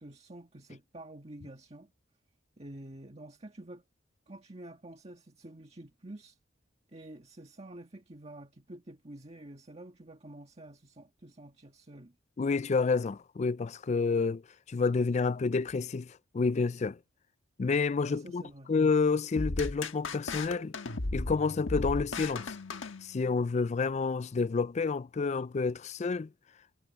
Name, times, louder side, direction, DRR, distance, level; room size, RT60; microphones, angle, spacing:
voice 1, 0.0-1.9 2.6-3.8 4.3-6.4 6.9-12.1 18.1-18.7, right 1 dB, 35° right, 1.7 m, -48 dB
voice 2, 12.4-14.4 14.7-17.0 17.6-18.4 18.7-20.8 21.1-22.6 23.0-26.3, left 4 dB, 35° left, 0.4 m, -29 dB
sound 1, 19.4-23.5, left 2 dB, 85° left, 1.4 m, -36 dB
head